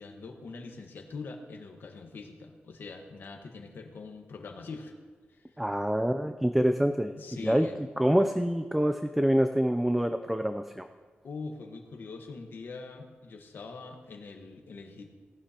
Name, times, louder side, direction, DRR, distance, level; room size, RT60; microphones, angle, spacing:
voice 1, 0.0-4.9 5.3-5.4 7.2-7.7 11.2-15.1, left 4 dB, 65° left, 4 dB, 1.3 m, -43 dB
voice 2, 5.6-7.7 8.0-10.9, equal, 5° right, 7 dB, 0.4 m, -26 dB
18.0 x 11.0 x 2.9 m, 1.5 s
wide cardioid pair, 145°, 4 cm